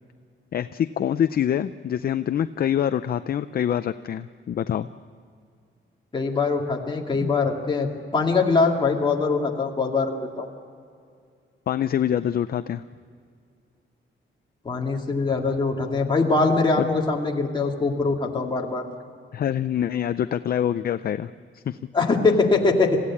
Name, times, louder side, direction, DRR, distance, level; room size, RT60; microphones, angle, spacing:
voice 1, 0.5-4.9 7.2-7.3 11.7-12.8 16.8-16.9 19.3-21.8, left 9 dB, 50° left, 12 dB, 0.5 m, -25 dB
voice 2, 6.1-10.5 14.6-18.9 21.9-23.0, left 3 dB, 25° left, 0 dB, 2.3 m, -22 dB
27.5 x 16.0 x 8.5 m, 2.3 s
wide cardioid pair, 180°, 21 cm